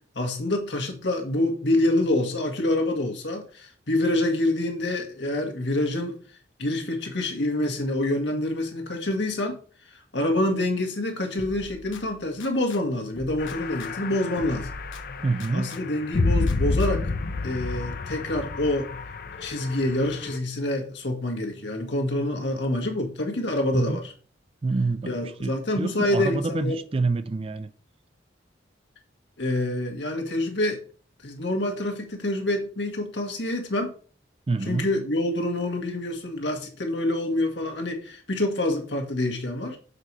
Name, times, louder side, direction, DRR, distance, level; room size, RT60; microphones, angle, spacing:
voice 1, 0.1-6.1 6.6-9.6 9.8-14.7 15.5-17.1 17.4-18.9 19.4-24.1 25.0-26.8 29.4-30.8 31.2-33.9 34.6-39.8, left 1 dB, 65° left, 1.6 m, -26 dB
sound 1, 11.4-12.8 13.2-15.8 16.2-17.2, left 2 dB, 85° left, 0.8 m, -43 dB
sound 2, 13.4-20.4, left 3 dB, 50° left, 0.6 m, -29 dB
voice 2, 15.2-15.8 23.7-24.0 24.6-27.7 34.5-34.9, right 3 dB, 30° right, 0.3 m, -27 dB
6.8 x 4.2 x 4.6 m
head